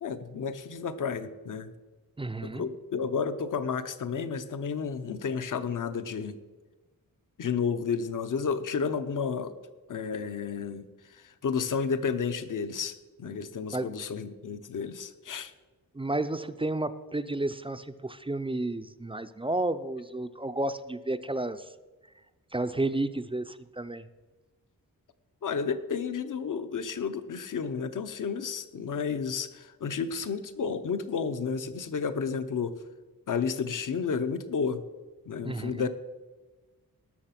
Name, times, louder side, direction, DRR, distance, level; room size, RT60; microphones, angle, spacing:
voice 1, 0.0-1.7 2.4-6.4 7.4-9.5 9.9-15.5 25.4-32.8 33.3-34.8 35.3-35.9, left 6 dB, 60° left, 11 dB, 0.9 m, -31 dB
voice 2, 2.2-2.7 13.7-13.9 15.9-21.7 22.5-24.1 35.4-35.9, right 2 dB, 15° right, 11 dB, 0.4 m, -32 dB
18.5 x 6.9 x 5.8 m, 1.3 s
wide cardioid pair, 165°, 35 cm